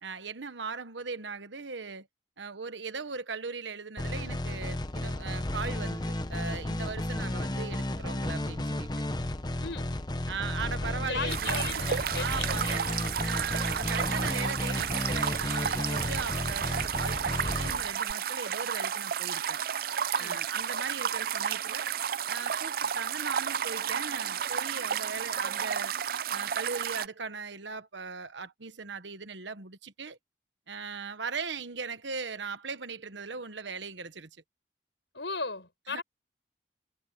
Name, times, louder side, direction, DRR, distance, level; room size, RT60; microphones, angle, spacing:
voice 1, 0.0-2.1 2.4-8.9 10.3-12.9 13.2-19.6 20.2-21.9 22.3-25.9 26.3-30.2 30.7-34.3 35.9-36.0, right 5 dB, 90° right, 1.3 m, -39 dB
sound 1, 4.0-18.1, left 1 dB, 25° left, 0.9 m, -33 dB
voice 2, 9.6-10.0 11.0-12.9 20.1-20.4 35.1-36.0, left 4 dB, 85° left, 5.4 m, -37 dB
sound 2, 11.3-27.1, right 8 dB, 55° right, 0.4 m, -32 dB
head